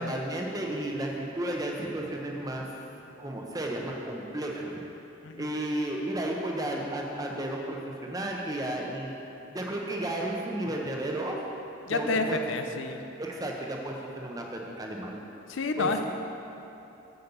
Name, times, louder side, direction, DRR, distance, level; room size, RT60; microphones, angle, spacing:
voice 1, 0.0-2.7 3.2-4.7 5.4-9.1 9.5-11.4 11.9-12.4 13.2-15.2 15.8-16.0, right 1 dB, 20° right, 0 dB, 0.9 m, -33 dB
voice 2, 11.9-13.0 15.5-16.0, left 3 dB, 90° left, 6 dB, 0.6 m, -29 dB
7.9 x 5.3 x 7.1 m, 2.9 s
head